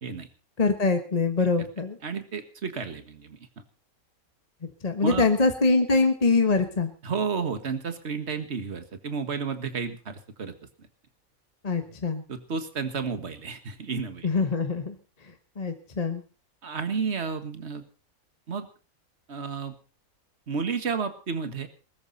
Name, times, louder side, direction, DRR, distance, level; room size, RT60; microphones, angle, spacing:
voice 1, 0.6-2.0 4.8-6.9 11.6-12.2 14.2-14.9 15.6-16.2, left 3 dB, 25° left, 6 dB, 1.3 m, -23 dB
voice 2, 2.0-3.6 5.0-5.3 7.0-10.9 12.3-14.3 16.6-17.8 18.5-18.7 19.3-19.8 20.5-21.7, right 5 dB, 45° right, 9 dB, 1.9 m, -32 dB
21.0 x 13.5 x 4.1 m, 0.34 s
omnidirectional pair, 1.6 m